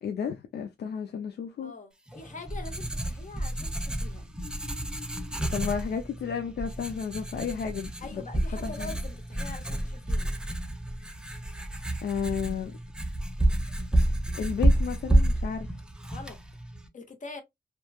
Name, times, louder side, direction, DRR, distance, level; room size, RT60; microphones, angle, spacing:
voice 1, 0.0-1.7 5.5-8.2 8.6-8.9 12.0-12.7 14.4-15.7, left 7 dB, 75° left, 0.4 m, -32 dB
voice 2, 1.6-4.3 8.0-10.3 16.1-16.4 16.9-17.4, left 3 dB, 45° left, 0.8 m, -44 dB
Writing, 2.1-16.9, right 1 dB, 5° right, 0.4 m, -29 dB
3.0 x 2.2 x 2.2 m
wide cardioid pair, 120°, 17 cm